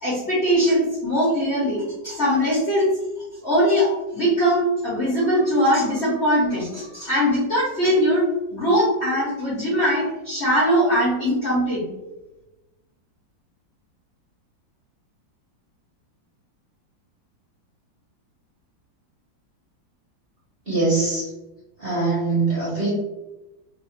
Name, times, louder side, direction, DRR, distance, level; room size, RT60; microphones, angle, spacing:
voice 1, 0.0-2.9 3.4-11.8, equal, 40° left, -8 dB, 1.2 m, -21 dB
voice 2, 20.7-21.2 21.8-22.9, right 3 dB, 35° right, -9 dB, 1.3 m, -22 dB
3.1 x 2.7 x 3.1 m, 1.0 s
omnidirectional pair, 2.1 m